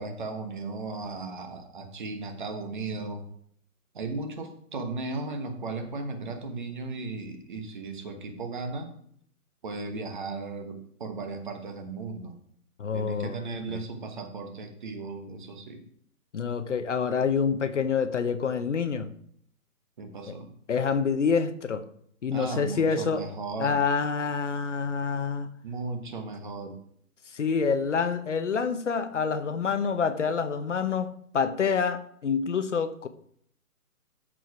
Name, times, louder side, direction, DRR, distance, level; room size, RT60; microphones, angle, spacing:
voice 1, 0.0-3.3 3.9-8.9 9.6-12.4 12.9-15.8 20.0-20.5 22.3-23.8 25.6-26.8, right 3 dB, 30° right, 5 dB, 1.2 m, -36 dB
voice 2, 12.8-13.4 13.7-13.8 16.3-19.1 20.3-20.4 20.7-21.8 22.2-23.2 23.6-25.5 27.3-33.1, left 6 dB, 50° left, 10 dB, 0.9 m, -27 dB
13.0 x 5.0 x 4.7 m, 0.66 s
hypercardioid pair, 165°, 45 cm